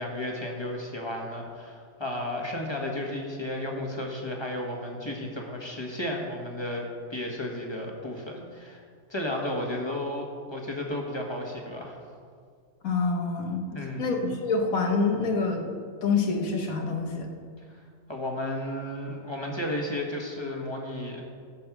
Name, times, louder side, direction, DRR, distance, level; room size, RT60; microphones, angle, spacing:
voice 1, 0.0-8.8 9.1-12.0 13.7-14.1 17.7-17.8 18.1-21.2, left 1 dB, 20° left, 0 dB, 1.5 m, -33 dB
voice 2, 12.8-15.6 16.0-17.3, left 4 dB, 80° left, 2 dB, 1.7 m, -27 dB
14.5 x 5.4 x 6.1 m, 2.1 s
omnidirectional pair, 1.4 m